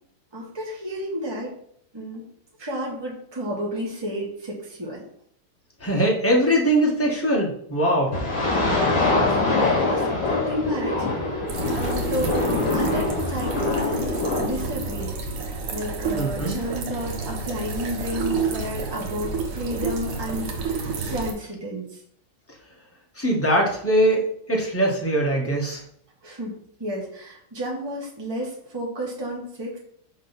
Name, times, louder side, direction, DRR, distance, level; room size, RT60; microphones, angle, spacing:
voice 1, 0.3-1.5 1.9-2.3 2.6-5.0 8.9-11.5 11.7-22.0 26.2-29.8, equal, 10° right, -3 dB, 1.7 m, -32 dB
voice 2, 5.8-8.2 16.1-16.5 23.2-25.8, right 1 dB, 5° left, -2 dB, 1.3 m, -21 dB
sound 1, 8.1-15.1, left 2 dB, 55° left, 3.2 m, -24 dB
sound 2, 11.5-21.3, right 4 dB, 85° right, 2.0 m, -30 dB
6.5 x 3.8 x 5.9 m, 0.66 s
omnidirectional pair, 2.4 m